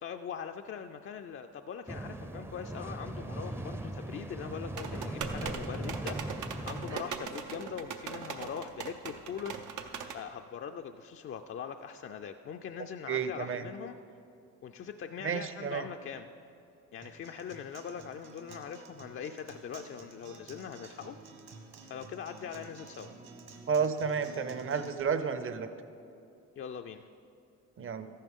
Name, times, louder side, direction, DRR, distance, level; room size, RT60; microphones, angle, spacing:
voice 1, 0.0-9.6 10.1-14.0 14.6-16.3 16.9-21.2 21.9-23.1 26.6-27.1, left 7 dB, 45° left, 5 dB, 0.4 m, -42 dB
sound 1, 1.9-7.0, right 1 dB, 10° right, 0.5 m, -39 dB
sound 2, 4.8-10.2, right 6 dB, 80° right, 0.8 m, -40 dB
voice 2, 13.1-13.7 15.2-15.9 23.7-25.7 27.8-28.1, right 6 dB, 45° right, 10 dB, 0.7 m, -31 dB
Acoustic guitar, 17.0-25.0, right 3 dB, 60° right, 1.6 m, -51 dB
13.5 x 11.0 x 3.6 m, 2.6 s
cardioid pair, 90°, 30 cm